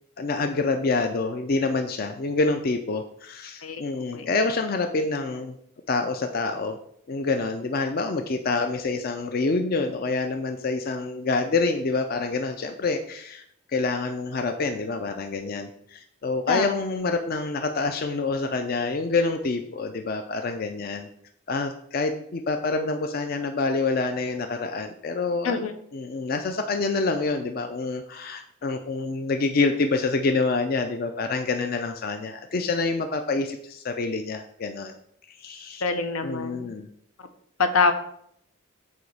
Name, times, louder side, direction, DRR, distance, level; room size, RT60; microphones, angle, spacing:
voice 1, 0.2-5.5 5.9-6.8 7.1-13.4 13.7-21.1 21.5-25.6 25.9-34.9 35.3-35.8 36.2-36.9, left 3 dB, 45° left, 6 dB, 0.4 m, -27 dB
voice 2, 35.8-36.7 37.6-37.9, left 4 dB, 80° left, 8 dB, 0.7 m, -24 dB
8.0 x 2.9 x 4.7 m, 0.68 s
head